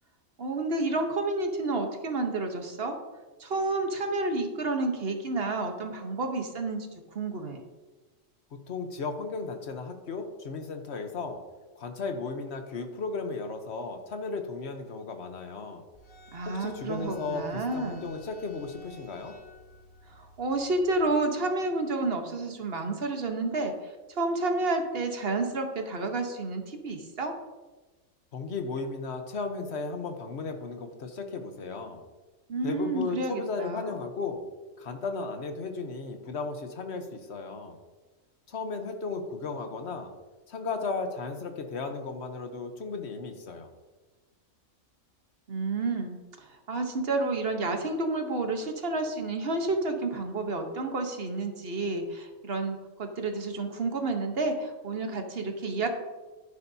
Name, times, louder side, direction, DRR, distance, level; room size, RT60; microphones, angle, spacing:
voice 1, 0.4-3.0 3.4-6.9 7.1-7.6 16.3-18.1 20.1-23.7 24.1-27.3 32.5-34.0 45.5-46.2 46.7-55.9, right 2 dB, 50° right, 4 dB, 1.3 m, -30 dB
voice 2, 8.7-11.4 11.7-15.8 16.4-19.4 28.3-32.0 32.6-34.4 34.8-37.8 38.5-40.1 40.5-43.7, left 4 dB, 55° left, 6 dB, 1.2 m, -35 dB
sound 1, 15.9-21.0, left 2 dB, 85° left, 2.9 m, -52 dB
11.5 x 9.8 x 2.8 m, 1.2 s
omnidirectional pair, 1.4 m